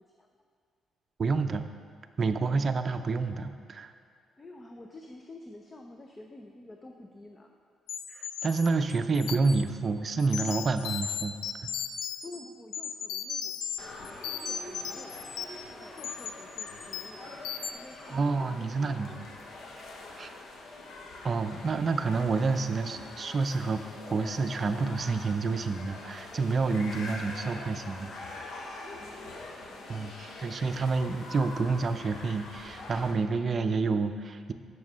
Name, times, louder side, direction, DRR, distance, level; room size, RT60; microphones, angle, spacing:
voice 1, 1.2-1.7 2.2-3.9 8.1-11.4 11.6-11.7 18.1-19.2 20.2-20.3 21.2-23.8 24.1-28.5 29.9-34.5, right 4 dB, 45° right, 9 dB, 0.5 m, -29 dB
voice 2, 4.4-7.5 12.2-19.3 29.0-29.4 29.7-29.9, left 2 dB, 25° left, 3 dB, 0.6 m, -50 dB
sound 1, 7.9-9.6 10.2-12.4 12.7-13.8 14.0-15.6 16.0-16.3 16.6-17.2 17.4-17.7, left 8 dB, 90° left, 0.4 m, -36 dB
sound 2, 13.8-33.1, left 2 dB, 65° left, 1.1 m, -44 dB
7.7 x 6.2 x 5.5 m, 2.2 s
cardioid pair, 90°, 0 cm